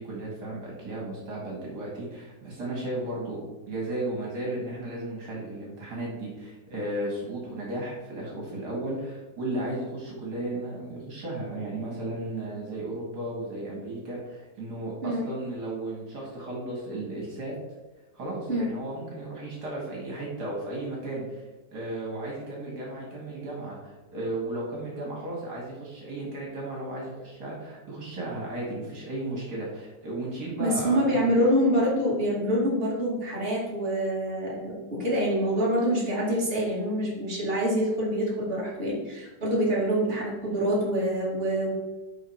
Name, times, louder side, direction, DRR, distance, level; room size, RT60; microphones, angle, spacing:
voice 1, 0.0-3.4 3.7-17.5 18.1-21.4 21.7-31.3, right 1 dB, 65° right, -3 dB, 2.5 m, -34 dB
voice 2, 15.0-15.3 18.5-18.7 30.6-41.7, equal, 30° right, -5 dB, 2.7 m, -26 dB
11.0 x 3.9 x 4.6 m, 1.2 s
omnidirectional pair, 1.9 m